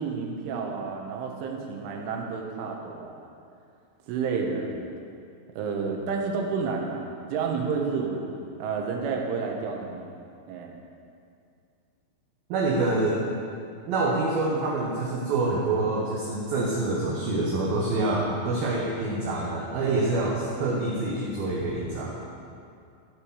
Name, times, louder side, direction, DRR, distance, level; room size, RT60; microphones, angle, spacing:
voice 1, 0.0-3.3 4.1-4.8 5.6-8.4 8.6-10.2 10.5-10.7, right 5 dB, 90° right, 1 dB, 3.7 m, -30 dB
voice 2, 12.5-13.2 13.9-22.2, right 2 dB, 70° right, -3 dB, 2.4 m, -26 dB
14.5 x 6.1 x 6.3 m, 2.4 s
omnidirectional pair, 5.4 m